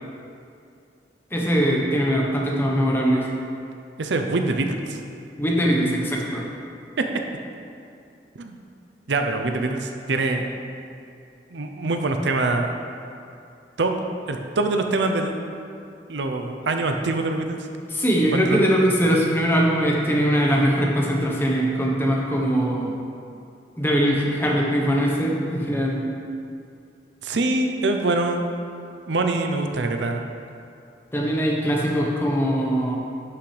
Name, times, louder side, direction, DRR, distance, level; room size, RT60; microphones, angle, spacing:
voice 1, 1.3-3.3 5.4-6.4 17.9-22.9 23.8-26.0 31.1-33.0, equal, 15° left, -2 dB, 1.0 m, -21 dB
voice 2, 4.0-5.0 7.0-7.1 8.4-8.6 9.1-10.5 11.5-12.7 13.8-13.9 14.3-15.4 16.1-17.6 18.3-18.6 27.2-28.4 29.1-30.2, right 2 dB, 85° right, 5 dB, 0.7 m, -24 dB
11.5 x 5.8 x 3.4 m, 2.5 s
head